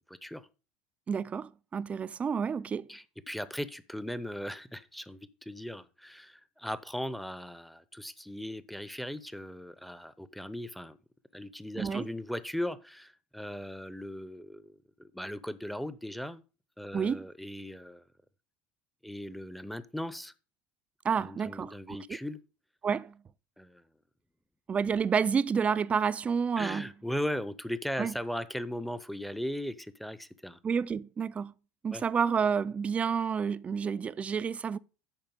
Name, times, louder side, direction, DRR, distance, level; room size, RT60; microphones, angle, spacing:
voice 1, 0.1-0.5 2.9-11.0 11.3-16.4 16.8-18.0 19.0-20.3 21.2-22.4 23.6-23.8 26.6-30.6 31.9-32.0, equal, ahead, 0.7 m, -38 dB
voice 2, 1.1-2.9 11.8-12.1 16.9-17.2 21.0-22.2 22.8-23.2 24.7-26.9 28.0-28.1 30.6-31.5 31.8-34.8, right 6 dB, 25° right, 0.4 m, -29 dB
9.0 x 5.5 x 5.3 m
hypercardioid pair, 90°, 5 cm